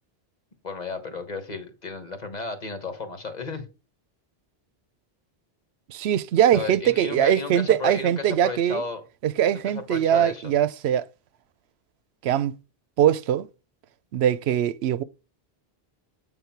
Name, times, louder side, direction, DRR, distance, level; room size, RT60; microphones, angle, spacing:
voice 1, 0.6-3.6 6.5-9.0 9.4-10.5, left 4 dB, 45° left, 1.4 m, -34 dB
voice 2, 5.9-8.8 9.2-11.1 12.2-12.5 13.0-13.5 14.1-15.0, right 10 dB, 85° right, 0.8 m, -22 dB
8.1 x 3.6 x 5.8 m
omnidirectional pair, 1.1 m